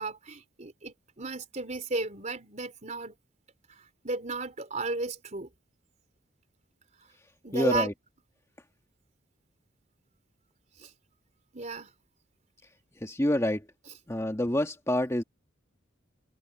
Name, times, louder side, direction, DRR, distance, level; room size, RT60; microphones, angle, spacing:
voice 1, 0.0-3.1 3.7-5.5 7.4-7.9 10.8-10.9 11.5-11.9, right 3 dB, 40° right, 3.9 m, -34 dB
voice 2, 7.5-7.9 13.0-13.7 14.1-15.2, left 1 dB, 15° left, 1.8 m, -27 dB
open air
head